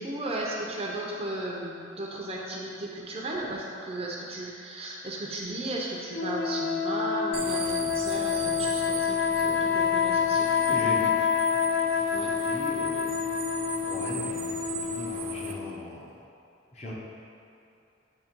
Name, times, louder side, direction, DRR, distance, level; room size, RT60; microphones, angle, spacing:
voice 1, 0.0-10.5 12.1-12.3, right 1 dB, 30° right, -3 dB, 0.7 m, -35 dB
sound 1, 6.1-15.8, left 7 dB, 65° left, 0.3 m, -27 dB
sound 2, 7.3-15.5, right 6 dB, 90° right, 0.6 m, -38 dB
voice 2, 10.7-11.2 12.1-13.2 13.9-16.1 16.7-16.9, equal, 35° left, -4 dB, 1.0 m, -38 dB
8.8 x 3.1 x 4.5 m, 2.7 s
head